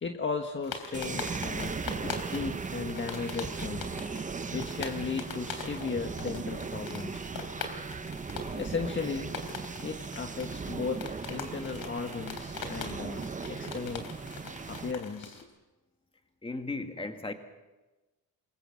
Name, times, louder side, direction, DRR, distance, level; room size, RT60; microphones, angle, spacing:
voice 1, 0.0-3.9 4.5-7.3 8.5-9.3 9.8-14.1 14.7-15.5, left 5 dB, 30° left, 4 dB, 1.4 m, -36 dB
sound 1, 0.6-15.4, left 5 dB, 75° left, 3.5 m, -42 dB
sound 2, 0.9-14.9, right 5 dB, 20° right, 0.7 m, -38 dB
voice 2, 16.4-17.3, left 3 dB, 15° left, 5 dB, 2.1 m, -36 dB
27.0 x 23.0 x 6.3 m, 1.1 s
cardioid pair, 130°, 36 cm